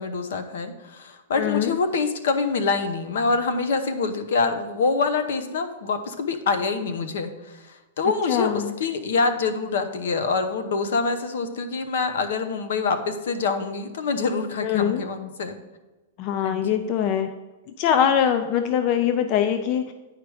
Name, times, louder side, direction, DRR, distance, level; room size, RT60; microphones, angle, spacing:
voice 1, 0.0-15.6 16.4-16.8, left 4 dB, 65° left, 9 dB, 0.9 m, -26 dB
voice 2, 1.3-1.7 8.3-8.7 14.6-15.0 16.2-17.3 17.8-19.9, left 9 dB, 30° left, 8 dB, 0.4 m, -22 dB
9.2 x 4.9 x 4.8 m, 1.2 s
supercardioid pair, 170°, 0 cm